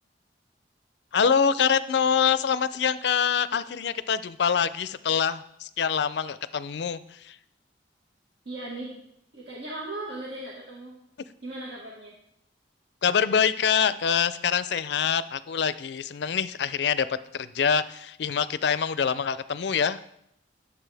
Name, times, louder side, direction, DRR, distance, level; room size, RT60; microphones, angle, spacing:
voice 1, 1.1-7.4 13.0-20.1, left 7 dB, 65° left, 15 dB, 0.4 m, -25 dB
voice 2, 8.4-8.9 9.3-11.0 11.4-12.2, right 2 dB, 75° right, -5 dB, 1.7 m, -37 dB
10.5 x 7.0 x 3.4 m, 0.74 s
head